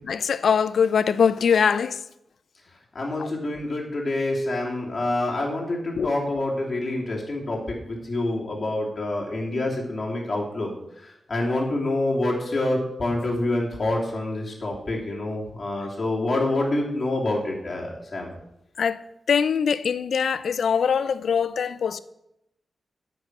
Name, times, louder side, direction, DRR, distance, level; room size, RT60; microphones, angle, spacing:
voice 1, 0.0-2.0 3.2-3.3 6.0-6.1 18.8-19.0 19.3-22.0, left 6 dB, 80° left, 0.5 m, -22 dB
voice 2, 2.9-10.7 11.3-18.3, left 2 dB, 35° left, 3.0 m, -27 dB
9.3 x 6.1 x 8.2 m
wide cardioid pair, 120°, 0 cm